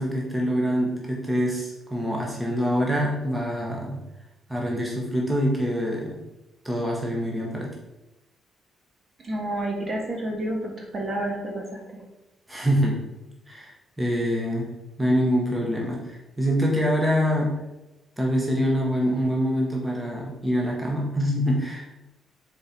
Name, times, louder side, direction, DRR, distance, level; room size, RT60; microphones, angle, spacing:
voice 1, 0.0-4.0 4.5-6.2 6.6-7.7 12.5-13.0 13.5-13.7 14.0-14.7 15.0-17.5 18.2-21.9, equal, 10° right, -2 dB, 1.5 m, -25 dB
voice 2, 9.2-12.0, right 1 dB, 35° right, 0 dB, 1.8 m, -30 dB
6.5 x 4.5 x 4.6 m, 0.98 s
cardioid pair, 90°, 0 cm